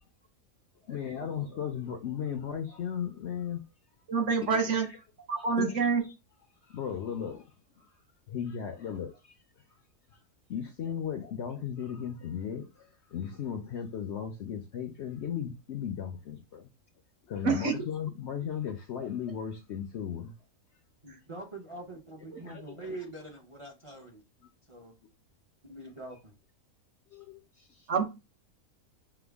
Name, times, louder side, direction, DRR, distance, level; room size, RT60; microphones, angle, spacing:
voice 1, 0.8-3.6 4.4-5.0 5.6-5.7 6.0-6.1 6.7-7.9 8.3-9.3 10.5-16.7 17.3-20.3 22.4-23.1 27.1-27.9, left 8 dB, 65° left, 0.7 m, -36 dB
voice 2, 4.1-4.9 5.3-6.0 17.4-17.7 22.3-22.4 27.9-28.0, right 5 dB, 55° right, 1.2 m, -27 dB
voice 3, 21.0-24.2 24.7-24.9 25.7-26.3, right 2 dB, 30° right, 0.6 m, -44 dB
5.8 x 2.2 x 3.4 m
omnidirectional pair, 1.6 m